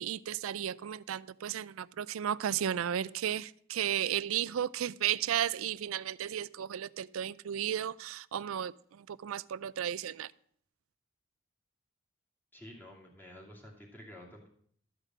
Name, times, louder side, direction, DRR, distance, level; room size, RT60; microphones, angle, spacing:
voice 1, 0.0-8.7 9.0-10.3, right 10 dB, 90° right, 0.4 m, -34 dB
voice 2, 12.5-14.5, left 1 dB, 10° left, 2.4 m, -50 dB
13.0 x 5.0 x 7.5 m
head